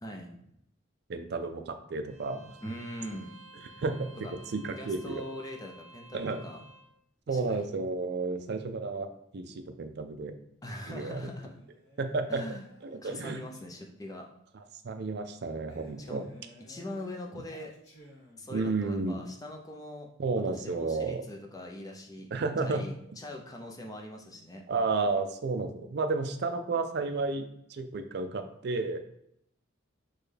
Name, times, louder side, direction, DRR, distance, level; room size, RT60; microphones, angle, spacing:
voice 1, 0.0-0.3 2.6-3.3 4.2-4.3 4.8-6.6 7.3-7.7 10.6-11.5 12.3-12.7 13.0-14.3 16.0-16.3 16.7-17.7 18.4-20.1 20.5-22.3 22.6-24.7, left 1 dB, 15° left, 1 dB, 0.5 m, -42 dB
voice 2, 1.1-2.6 3.8-4.1 4.5-5.2 6.1-6.4 7.3-10.3 10.9-11.3 12.0-12.4 12.8-13.4 14.5-16.2 18.5-19.2 20.2-21.2 22.3-22.8 24.7-29.0, right 3 dB, 55° right, 8 dB, 0.4 m, -32 dB
Bowed string instrument, 2.1-6.9, right 2 dB, 35° right, 1.2 m, -53 dB
Male speech man speaking, 11.1-14.1 15.7-18.7, equal, 55° left, 1.0 m, -55 dB
6.2 x 2.3 x 3.3 m, 0.75 s
head